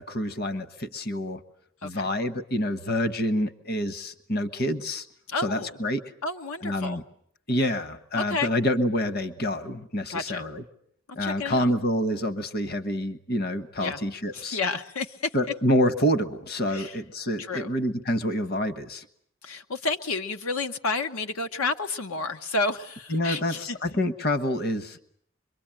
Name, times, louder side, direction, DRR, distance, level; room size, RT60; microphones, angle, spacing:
voice 1, 0.0-1.4 1.8-5.1 5.4-6.0 6.6-7.0 7.5-10.6 11.1-14.6 15.3-19.0 23.1-25.0, left 1 dB, 45° left, 10 dB, 1.3 m, -27 dB
voice 2, 5.3-5.7 6.2-7.0 8.1-8.5 10.1-10.4 11.2-11.7 13.8-14.0 14.3-15.2 16.7-16.9 17.4-17.7 19.4-23.8, left 3 dB, 75° left, 6 dB, 1.0 m, -30 dB
25.5 x 23.0 x 9.0 m, 0.66 s
head